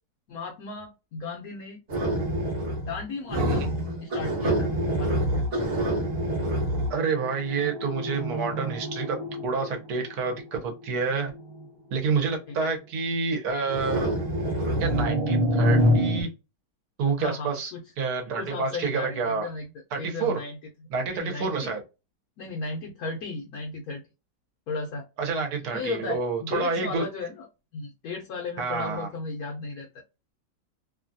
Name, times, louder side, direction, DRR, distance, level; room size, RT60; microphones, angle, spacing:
voice 1, 0.3-1.8 2.8-3.6 4.0-5.4 12.5-12.7 17.2-17.8 18.4-19.7 20.0-20.6 21.1-21.7 22.4-24.0 24.7-25.1 25.4-27.5 27.7-29.9, left 3 dB, 70° left, 0 dB, 1.0 m, -35 dB
sound 1, 1.9-3.0 3.3-10.2 11.1-11.4 13.7-16.2, equal, 40° right, 1.2 m, -26 dB
voice 2, 3.4-3.7 6.9-9.2 9.4-11.3 11.9-14.0 14.8-16.3 17.0-17.7 18.0-19.5 19.9-20.4 20.9-21.8 25.2-27.1 28.6-29.1, right 4 dB, 65° right, 3 dB, 1.2 m, -28 dB
3.0 x 2.3 x 2.6 m, 0.27 s
omnidirectional pair, 1.9 m